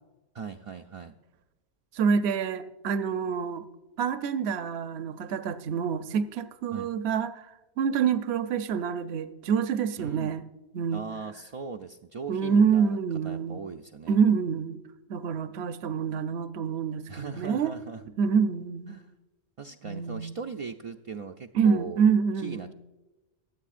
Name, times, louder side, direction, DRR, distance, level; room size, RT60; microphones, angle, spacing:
voice 1, 0.3-1.1 6.7-6.9 10.0-10.3 10.9-13.0 13.2-14.2 17.1-18.0 18.9-19.1 19.6-22.0 22.4-22.7, right 5 dB, 60° right, 3 dB, 0.3 m, -39 dB
voice 2, 1.9-3.7 4.0-7.3 7.8-10.4 10.7-11.0 12.3-13.6 14.1-14.8 15.1-17.7 18.2-19.0 19.8-20.3 21.5-22.7, right 6 dB, 75° right, 11 dB, 0.9 m, -26 dB
23.0 x 7.9 x 2.5 m, 1.1 s
omnidirectional pair, 1.1 m